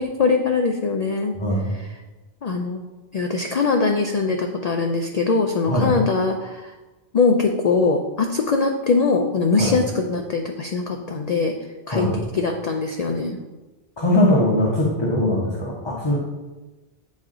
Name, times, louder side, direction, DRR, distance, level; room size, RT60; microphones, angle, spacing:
voice 1, 0.0-1.3 1.7-1.9 2.4-2.8 3.1-6.7 7.1-11.5 11.9-12.1 12.3-13.4, left 4 dB, 65° left, 3 dB, 0.4 m, -22 dB
voice 2, 1.3-1.7 5.7-5.9 9.5-9.7 11.9-12.1 14.0-16.2, left 1 dB, 25° left, -5 dB, 0.9 m, -21 dB
8.9 x 3.2 x 3.7 m, 1.2 s
omnidirectional pair, 1.2 m